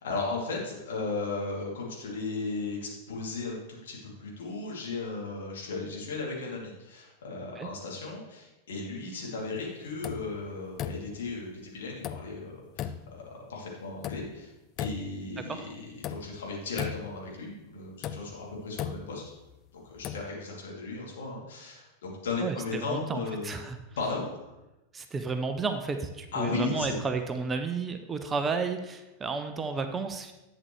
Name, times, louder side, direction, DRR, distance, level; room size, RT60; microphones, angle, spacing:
voice 1, 0.0-14.5 14.8-19.3 19.7-23.5 24.0-24.5 26.3-27.0, left 3 dB, 60° left, -3 dB, 2.7 m, -36 dB
sound 1, 10.0-10.4 10.8-11.3 12.0-12.4 12.8-13.2 14.0-14.4 14.8-15.3 16.0-16.4 16.8-17.3 18.0-19.5 19.9-20.3, left 9 dB, 35° left, 0.3 m, -37 dB
voice 2, 22.4-23.8 24.9-30.3, right 4 dB, 20° right, 7 dB, 0.7 m, -32 dB
11.0 x 8.1 x 3.2 m, 0.99 s
figure-of-eight pair, 90°, 0 cm